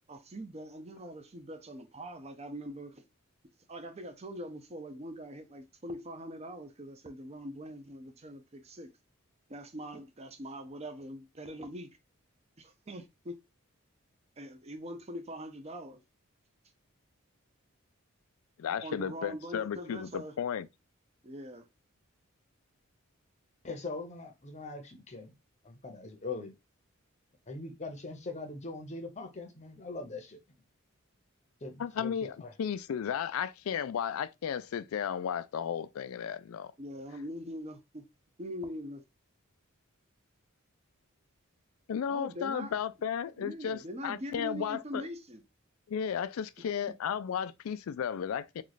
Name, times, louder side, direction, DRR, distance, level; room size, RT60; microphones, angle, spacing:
voice 1, 0.1-3.0 3.7-8.9 9.5-11.9 12.9-13.3 14.4-16.0 18.8-20.3 21.2-21.7 36.8-38.0 38.4-39.0 42.0-42.7 43.4-45.4, equal, 30° right, 0.6 m, -42 dB
voice 2, 18.6-20.7 31.8-36.7 41.9-45.1 45.9-48.6, left 8 dB, 80° left, 0.3 m, -34 dB
voice 3, 23.6-25.3 25.6-26.5 27.5-30.4 31.6-32.1 32.4-32.5, left 3 dB, 30° left, 0.7 m, -41 dB
3.1 x 2.3 x 3.9 m
head